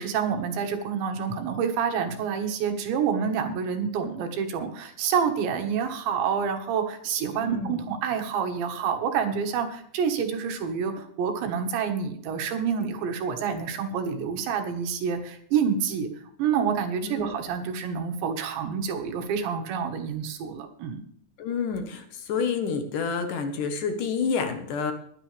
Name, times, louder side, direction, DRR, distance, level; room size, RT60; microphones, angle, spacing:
voice 1, 0.0-16.1 16.4-21.0, right 7 dB, 80° right, 5 dB, 3.8 m, -28 dB
voice 2, 7.4-7.8 17.0-17.4 21.4-24.9, left 5 dB, 65° left, 7 dB, 2.2 m, -29 dB
21.0 x 9.8 x 3.4 m, 0.67 s
omnidirectional pair, 5.1 m